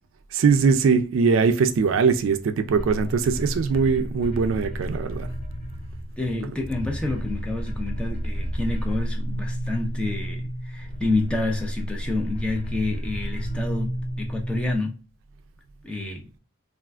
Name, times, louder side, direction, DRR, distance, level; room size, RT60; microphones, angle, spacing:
voice 1, 0.3-5.3, right 5 dB, 65° right, 0.3 m, -21 dB
sound 1, 2.7-6.3 6.6-14.8, equal, 25° left, 1.6 m, -31 dB
voice 2, 6.2-13.9 14.2-14.9 15.8-16.2, left 2 dB, 5° left, 0.4 m, -28 dB
3.4 x 2.4 x 2.3 m
head